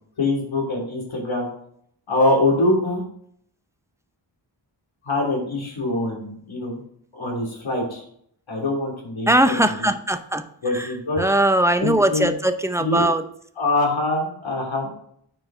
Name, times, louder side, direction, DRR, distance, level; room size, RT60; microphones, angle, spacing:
voice 1, 0.2-1.5 2.1-3.0 5.0-6.8 7.1-8.0 8.5-9.9 10.6-11.2 11.8-12.3 12.8-13.0 13.6-14.9, left 2 dB, 75° left, -2 dB, 3.1 m, -24 dB
voice 2, 9.3-10.4 10.7-10.9 11.2-13.2, right 1 dB, 5° right, 9 dB, 0.6 m, -20 dB
9.0 x 4.8 x 3.9 m, 0.66 s
wide cardioid pair, 60°, 47 cm